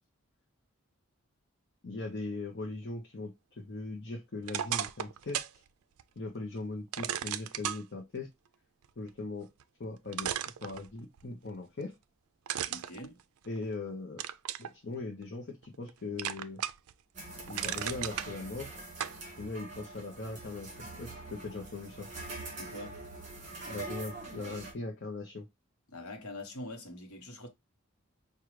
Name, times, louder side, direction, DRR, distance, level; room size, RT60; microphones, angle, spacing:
voice 1, 1.8-5.6 6.2-8.3 9.0-9.5 9.8-10.3 10.6-11.9 13.5-14.2 14.6-16.6 17.5-18.7 19.4-22.1 23.7-25.5, left 3 dB, 50° left, 0.7 m, -40 dB
sound 1, 4.4-5.6 6.0-6.1 6.9-7.8 9.6-9.7 10.1-11.2 12.5-13.7 14.2-14.7 15.2-15.9 16.2-16.9 17.3-18.3 19.0-19.2, right 11 dB, 85° right, 0.4 m, -35 dB
voice 2, 12.7-13.2 22.6-23.0 25.9-27.5, left 1 dB, 85° left, 1.1 m, -44 dB
sound 2, 17.1-24.7, right 2 dB, 35° right, 1.8 m, -44 dB
4.9 x 2.3 x 3.0 m
head